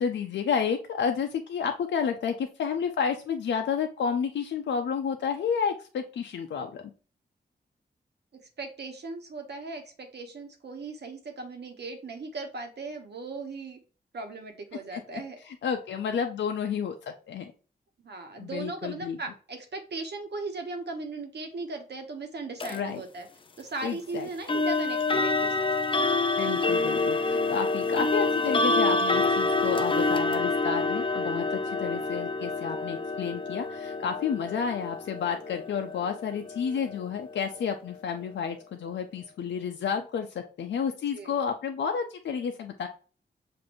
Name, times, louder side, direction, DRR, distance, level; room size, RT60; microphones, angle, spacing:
voice 1, 0.0-6.8 14.9-15.2 15.5-17.0 17.3-17.4 18.4-19.2 22.7-23.0 23.8-24.3 26.4-42.9, left 6 dB, 90° left, 5 dB, 0.4 m, -31 dB
voice 2, 8.6-13.8 14.1-15.4 18.0-23.3 23.6-25.7 41.1-41.3, right 3 dB, 65° right, 4 dB, 1.1 m, -38 dB
sound 1, 22.6-22.8 24.5-37.3, left 3 dB, 30° left, 0.4 m, -27 dB
6.1 x 2.5 x 2.5 m, 0.38 s
wide cardioid pair, 85°, 18 cm